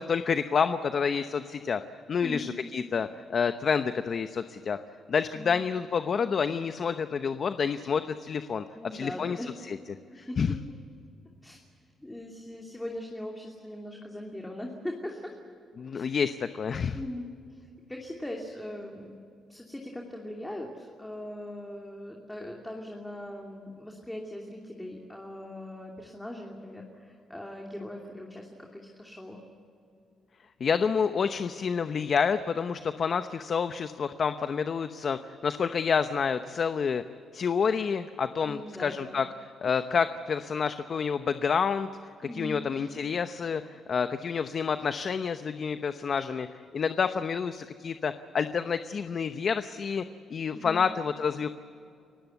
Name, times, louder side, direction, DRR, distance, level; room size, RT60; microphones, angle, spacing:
voice 1, 0.0-1.8 2.1-4.8 5.1-8.6 8.9-9.4 9.7-9.8 10.2-10.5 15.8-17.0 30.6-37.0 37.3-39.3 39.6-41.9 42.3-50.0 50.3-51.5, left 6 dB, 50° left, 10 dB, 0.9 m, -28 dB
voice 2, 2.2-2.5 5.3-5.5 8.7-9.5 10.1-10.6 11.4-11.6 12.0-15.3 15.9-16.1 16.9-19.1 19.5-29.4 38.4-39.2 42.2-42.6 50.5-50.8, left 1 dB, 10° left, 0 dB, 2.8 m, -40 dB
29.5 x 16.5 x 8.2 m, 2.5 s
cardioid pair, 90°, 0 cm